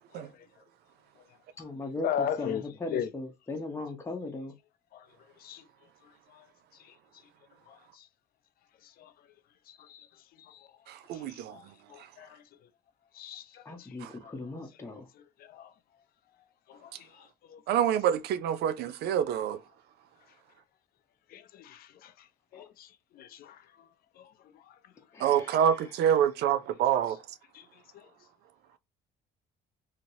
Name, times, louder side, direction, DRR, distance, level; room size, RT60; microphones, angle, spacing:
voice 1, 0.1-0.5 1.6-1.7 2.0-3.1 4.9-5.6 6.0-6.5 6.8-6.9 7.7-8.1 8.8-9.1 9.7-10.1 10.4-10.7 11.1-12.4 13.1-14.0 14.2-14.3 15.1-15.7 16.7-17.6 18.8-18.9 21.3-22.3 22.5-23.9 24.2-24.8 27.5-28.1, left 8 dB, 60° left, 0.5 m, -40 dB
voice 2, 1.6-4.5 13.6-15.1 22.5-22.7 25.1-25.6, left 2 dB, 15° left, 0.8 m, -38 dB
voice 3, 10.9-11.6 14.0-14.1 17.7-19.6 25.2-27.2, right 9 dB, 75° right, 0.5 m, -26 dB
2.9 x 2.8 x 2.7 m
cardioid pair, 110°, 17 cm